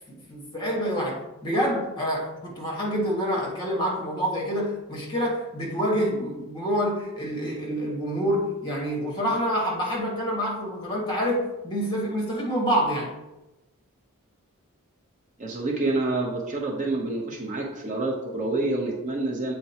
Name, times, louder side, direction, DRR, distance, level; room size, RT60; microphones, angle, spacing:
voice 1, 0.3-13.1, equal, 20° left, -2 dB, 1.8 m, -27 dB
voice 2, 15.4-19.5, right 2 dB, 35° right, -1 dB, 0.8 m, -27 dB
7.7 x 4.4 x 2.9 m, 0.99 s
head